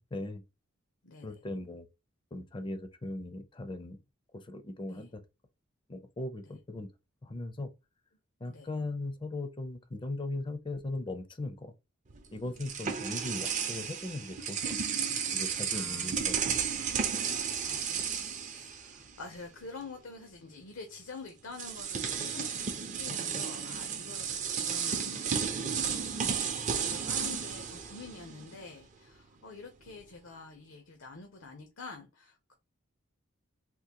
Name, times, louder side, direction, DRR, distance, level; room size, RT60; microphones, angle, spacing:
voice 1, 0.1-0.4 1.2-1.9 2.3-4.0 4.3-5.2 5.9-6.9 7.2-7.7 8.4-11.7 12.3-14.8 15.3-16.6 17.1-17.2, left 2 dB, 25° left, 0.5 m, -38 dB
voice 2, 1.0-1.4 4.9-5.1 8.5-8.7 12.7-12.9 15.7-16.1 17.6-32.5, left 3 dB, 70° left, 0.7 m, -48 dB
sound 1, 12.1-19.4 19.6-19.8 21.0-21.1 21.5-28.7, right 7 dB, 35° right, 0.5 m, -33 dB
3.7 x 2.5 x 2.8 m
head